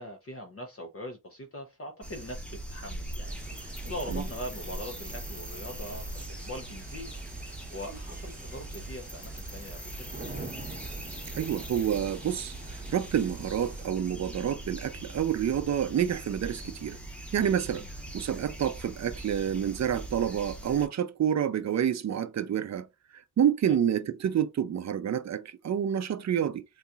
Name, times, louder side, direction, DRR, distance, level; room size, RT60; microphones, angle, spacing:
voice 1, 0.0-7.1 7.4-10.2 17.7-17.9 23.7-23.8, left 1 dB, 45° left, 0.7 m, -42 dB
sound 1, 2.0-20.9, right 1 dB, 5° left, 0.9 m, -41 dB
sound 2, 3.2-13.9, right 3 dB, 25° right, 0.8 m, -47 dB
voice 2, 11.3-17.0 17.3-17.8 18.1-22.9 23.1-26.6, right 9 dB, 55° right, 0.5 m, -28 dB
3.9 x 2.8 x 2.3 m
wide cardioid pair, 90°, 33 cm